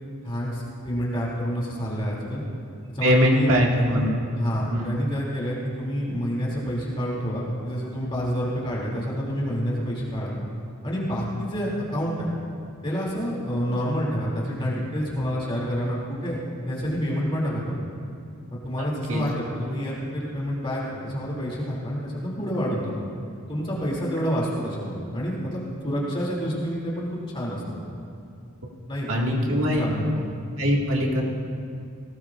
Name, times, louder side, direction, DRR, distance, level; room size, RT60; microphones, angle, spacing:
voice 1, 0.2-2.4 2.9-3.5 4.4-10.4 10.8-12.3 12.8-16.4 16.7-17.7 18.6-23.0 23.5-27.8 28.9-30.2, equal, 25° left, -5 dB, 2.7 m, -28 dB
voice 2, 3.0-4.2 4.7-4.9 19.1-19.2 29.1-29.8 30.6-31.2, equal, 65° right, -1 dB, 1.9 m, -22 dB
18.5 x 18.0 x 2.5 m, 2.4 s
head